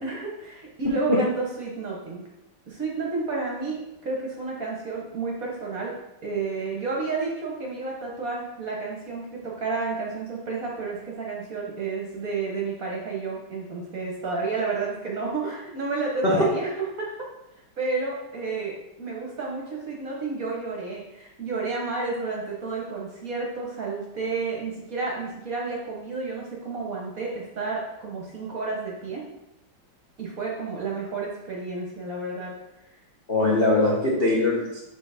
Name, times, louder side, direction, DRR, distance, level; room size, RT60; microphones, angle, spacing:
voice 1, 0.0-2.2 2.7-3.8 4.0-5.9 6.2-17.1 17.8-29.2 30.2-32.5, right 4 dB, 50° right, -2 dB, 1.2 m, -31 dB
voice 2, 33.3-34.8, left 2 dB, 45° left, -4 dB, 0.8 m, -21 dB
6.1 x 5.6 x 3.4 m, 0.91 s
omnidirectional pair, 2.4 m